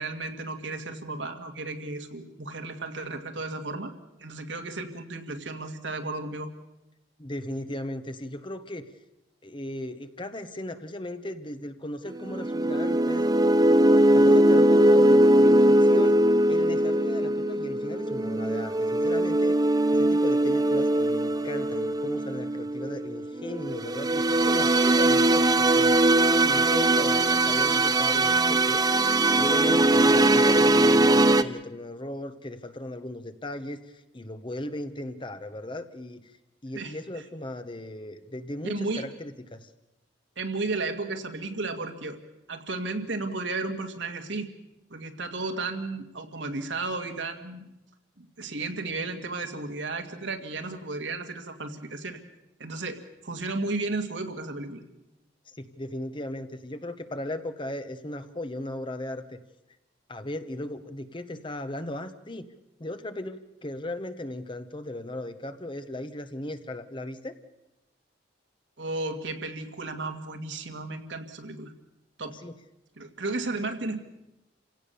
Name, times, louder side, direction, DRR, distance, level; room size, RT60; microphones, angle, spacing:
voice 1, 0.0-3.9 4.2-6.5 36.7-37.0 38.6-39.1 40.4-42.2 42.5-44.5 44.9-47.7 48.2-52.2 52.6-54.8 68.8-71.7 72.2-72.4 73.0-74.0, right 3 dB, 75° right, 6 dB, 2.1 m, -33 dB
voice 2, 7.2-8.9 9.4-13.2 14.1-16.2 16.5-19.6 19.9-25.9 26.4-28.9 29.3-33.8 34.1-36.2 36.6-39.7 55.5-59.4 60.1-62.5 62.8-67.3 72.2-72.5, left 1 dB, 25° left, 10 dB, 1.1 m, -37 dB
sound 1, 12.2-31.4, right 1 dB, 20° right, 0.7 m, -21 dB
28.0 x 17.0 x 7.0 m, 0.92 s
head